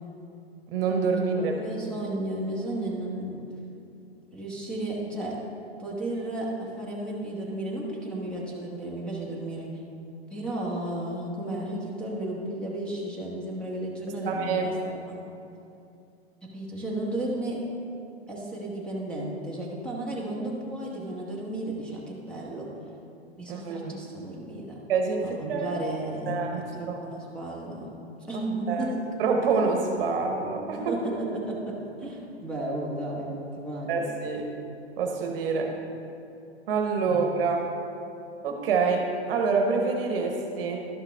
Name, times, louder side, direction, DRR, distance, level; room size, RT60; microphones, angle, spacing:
voice 1, 0.7-1.5 14.3-14.8 23.5-23.9 24.9-25.7 26.3-26.6 26.9-27.0 28.3-28.9 29.2-30.9 33.9-34.5 35.0-35.7 36.7-37.7 38.4-40.9, right 4 dB, 55° right, 3 dB, 1.1 m, -26 dB
voice 2, 1.3-3.5 4.3-5.4 5.8-9.7 10.3-15.2 16.4-17.6 18.3-22.7 23.4-24.8 25.2-26.3 26.7-27.9 28.3-29.0 30.9-34.1 37.1-37.2, right 1 dB, 5° left, -5 dB, 1.4 m, -33 dB
11.5 x 5.7 x 3.5 m, 2.6 s
hypercardioid pair, 125°, 33 cm